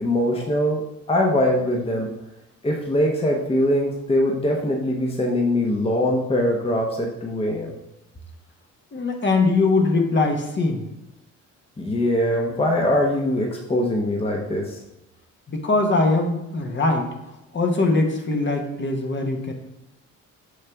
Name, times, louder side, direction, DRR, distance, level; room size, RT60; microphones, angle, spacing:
voice 1, 0.0-2.1 2.6-7.7 11.8-14.8, left 1 dB, 20° left, 0 dB, 1.0 m, -22 dB
voice 2, 8.9-10.8 15.5-17.1 17.5-19.5, left 3 dB, 40° left, 2 dB, 1.2 m, -21 dB
6.4 x 5.6 x 3.5 m, 0.90 s
cardioid pair, 90°, 30 cm